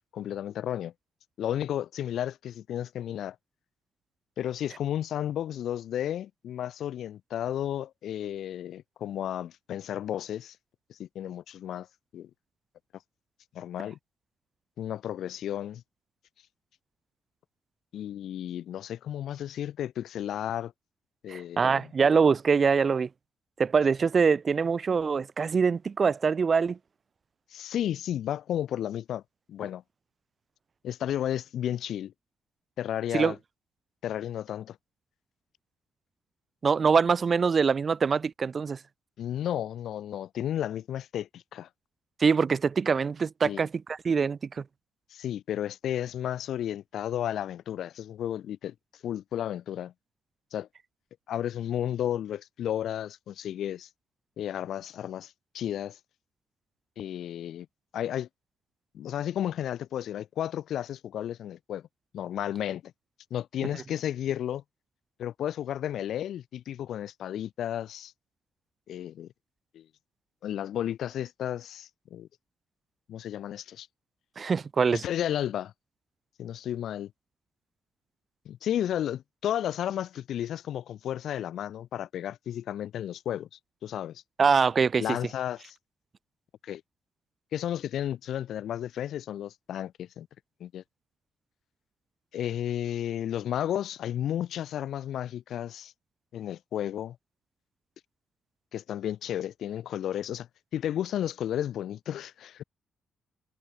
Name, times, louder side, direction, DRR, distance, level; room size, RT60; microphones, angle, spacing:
voice 1, 0.1-0.9 1.4-3.4 4.4-10.6 11.0-11.9 12.1-12.3 13.5-14.0 14.8-15.8 17.9-20.7 21.2-21.9 27.5-29.2 29.5-29.8 30.8-32.1 32.8-33.4 34.0-34.8 39.2-41.7 43.4-43.7 45.1-48.7 49.0-49.9 50.5-50.7 51.3-53.9 54.4-56.0 57.0-57.7 57.9-58.3 58.9-61.8 62.1-62.9 63.3-64.6 65.2-68.1 68.9-69.3 69.7-69.9 70.4-72.3 73.1-73.9 74.9-75.7 76.4-77.1 78.5-83.5 83.8-84.2 85.0-85.8 86.6-86.8 87.5-90.3 90.6-90.8 92.3-95.9 96.3-97.2 98.7-100.5 100.7-102.6, left 11 dB, 75° left, 2.1 m, -33 dB
voice 2, 21.3-23.1 23.6-26.8 33.1-33.3 36.6-38.8 42.2-44.6 74.4-75.0 84.4-85.0, right 5 dB, 40° right, 0.6 m, -24 dB
cardioid pair, 115°, 0 cm